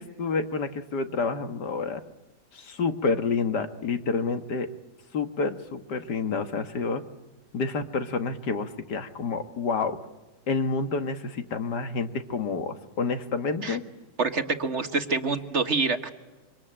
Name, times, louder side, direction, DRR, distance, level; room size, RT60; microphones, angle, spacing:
voice 1, 0.0-2.0 2.5-4.7 5.1-7.0 7.5-10.0 10.5-13.8, left 4 dB, 75° left, 8 dB, 2.2 m, -29 dB
voice 2, 14.2-16.1, right 4 dB, 45° right, 8 dB, 1.6 m, -26 dB
26.5 x 25.0 x 8.9 m, 1.1 s
omnidirectional pair, 1.8 m